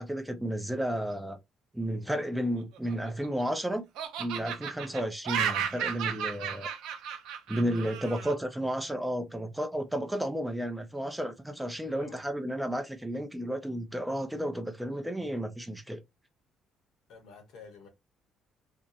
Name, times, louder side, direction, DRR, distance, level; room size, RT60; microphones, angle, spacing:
voice 1, 0.0-1.4 1.7-3.8 4.2-6.7 7.5-16.0, equal, 5° right, 0.4 m, -32 dB
Laughter, 2.7-3.6 4.0-8.3, right 8 dB, 90° right, 0.5 m, -34 dB
voice 2, 7.8-8.2 11.9-12.2 17.1-17.9, left 4 dB, 75° left, 0.9 m, -49 dB
2.6 x 2.0 x 2.5 m
cardioid pair, 135°, 0 cm